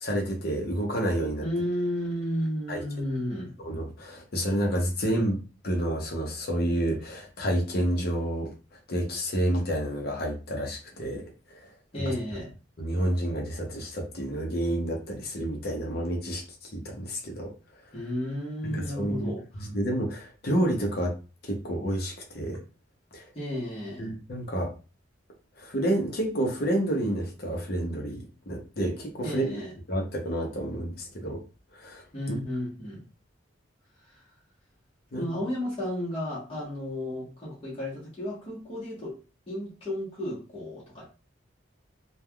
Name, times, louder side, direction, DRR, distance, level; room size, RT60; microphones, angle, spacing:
voice 1, 0.0-1.4 2.7-2.8 3.6-5.4 5.6-8.5 8.9-11.2 11.5-11.7 12.8-17.5 18.6-19.3 19.6-21.1 21.4-22.6 23.1-23.2 24.0-24.7 25.6-29.6 29.9-31.4 31.7-32.0 32.3-32.4 35.1-35.2, right 1 dB, 50° left, 0 dB, 0.7 m, -29 dB
voice 2, 1.4-3.5 11.9-12.5 17.9-19.7 23.3-24.1 29.2-29.7 32.1-33.0 34.0-34.2 35.2-39.1 39.5-41.1, left 1 dB, 30° left, -6 dB, 1.0 m, -33 dB
3.3 x 2.2 x 2.2 m, 0.34 s
head